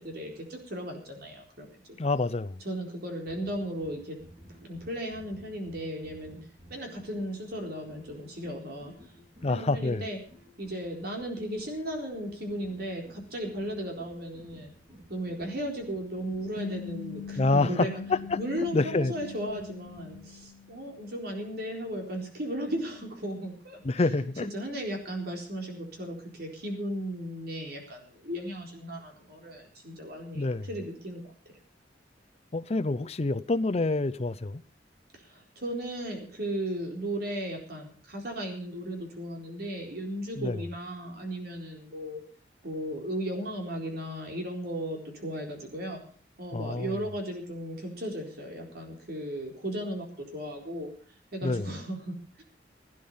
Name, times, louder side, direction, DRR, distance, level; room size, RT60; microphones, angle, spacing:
voice 1, 0.0-1.8 2.6-4.2 4.6-6.4 6.7-9.2 9.4-10.2 10.6-14.7 15.1-18.0 18.4-31.2 35.1-42.2 42.6-46.0 46.4-50.9 51.3-52.4, right 1 dB, 60° right, 4.2 m, -36 dB
voice 2, 2.0-2.6 9.4-10.0 17.4-18.4 18.7-19.1 23.8-24.5 30.4-30.7 32.5-34.6 40.4-40.6 46.5-46.9 51.4-51.7, left 3 dB, 35° left, 0.6 m, -27 dB
sound 1, 3.1-20.4, equal, 30° right, 3.7 m, -54 dB
sound 2, 16.6-21.2, left 6 dB, 70° left, 1.7 m, -42 dB
16.5 x 10.5 x 5.6 m
head